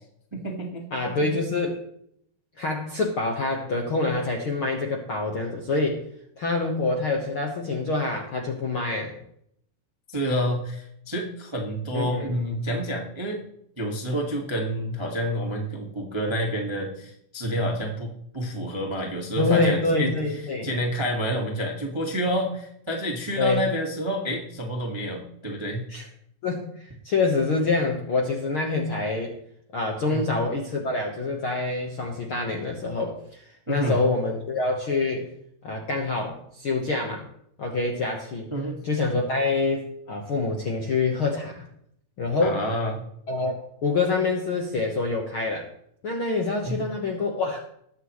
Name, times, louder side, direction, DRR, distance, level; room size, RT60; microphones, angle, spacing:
voice 1, 0.3-1.0 10.1-13.4 13.8-20.1 20.6-25.8 30.1-30.2 33.7-34.0 38.5-38.8 42.4-43.0 46.6-46.7, equal, 15° right, 0 dB, 0.8 m, -28 dB
voice 2, 0.9-1.8 2.6-6.0 6.4-9.2 11.9-12.3 19.4-20.7 23.4-23.6 25.9-26.1 26.4-29.4 29.7-35.3 35.6-37.2 37.6-38.5 38.8-41.6 42.2-42.6 43.3-43.5 43.8-45.7 46.0-47.6, left 3 dB, 60° left, 1 dB, 1.4 m, -26 dB
21.5 x 8.2 x 3.1 m, 0.71 s
omnidirectional pair, 4.1 m